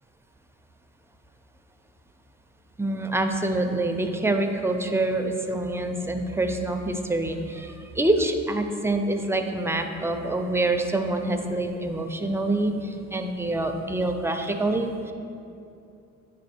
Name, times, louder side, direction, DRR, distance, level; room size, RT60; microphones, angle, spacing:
voice 1, 2.8-15.1, right 2 dB, 10° right, 5 dB, 0.4 m, -26 dB
8.8 x 3.0 x 4.3 m, 2.6 s
cardioid pair, 90°, 30 cm